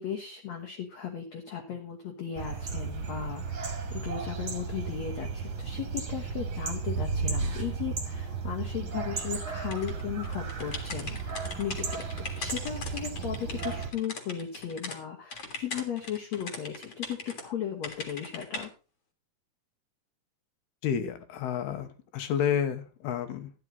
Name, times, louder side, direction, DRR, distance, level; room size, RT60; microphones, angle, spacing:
voice 1, 0.0-12.0 12.4-18.7, left 9 dB, 60° left, 2 dB, 1.9 m, -36 dB
sound 1, 2.4-13.9, right 5 dB, 40° right, 2.1 m, -34 dB
sound 2, 9.7-15.0 15.3-17.4 17.8-18.7, left 3 dB, 45° left, 2.1 m, -40 dB
voice 2, 20.8-23.5, left 8 dB, 80° left, 10 dB, 3.0 m, -30 dB
12.5 x 9.8 x 3.9 m, 0.32 s
omnidirectional pair, 4.6 m